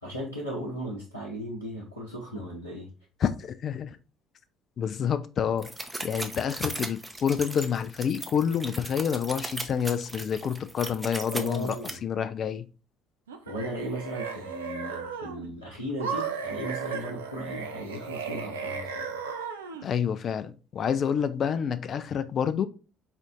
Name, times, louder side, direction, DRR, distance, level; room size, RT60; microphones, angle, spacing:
voice 1, 0.0-2.9 11.3-12.0 13.5-19.1, equal, 90° left, 0.8 m, -36 dB
voice 2, 3.2-4.0 4.8-5.7 6.0-11.8 12.0-12.6 19.8-22.7, left 7 dB, 40° left, 0.4 m, -28 dB
sound 1, 5.6-11.9, right 1 dB, 10° right, 0.6 m, -37 dB
sound 2, 13.3-15.5 16.0-19.9, right 6 dB, 75° right, 0.4 m, -35 dB
4.4 x 2.5 x 3.6 m
figure-of-eight pair, 55°, 0 cm